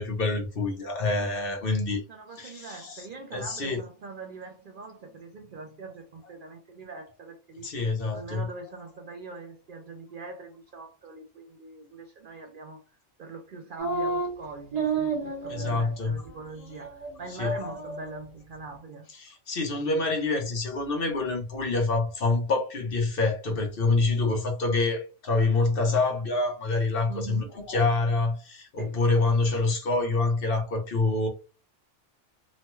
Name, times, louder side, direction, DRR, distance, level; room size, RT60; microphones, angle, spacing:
voice 1, 0.0-2.0 2.4-3.1 3.3-3.8 7.6-8.4 15.5-16.1 17.4-17.7 19.2-31.3, left 3 dB, 55° left, 0.9 m, -26 dB
voice 2, 2.1-7.7 8.1-12.8 13.2-19.1 27.1-27.5 28.8-29.0, right 3 dB, 55° right, 0.6 m, -43 dB
sound 1, 13.8-14.3 14.7-15.9 16.2-16.3 16.8-17.1 17.4-18.2, right 3 dB, 35° right, 1.1 m, -30 dB
3.0 x 2.2 x 3.0 m
omnidirectional pair, 1.2 m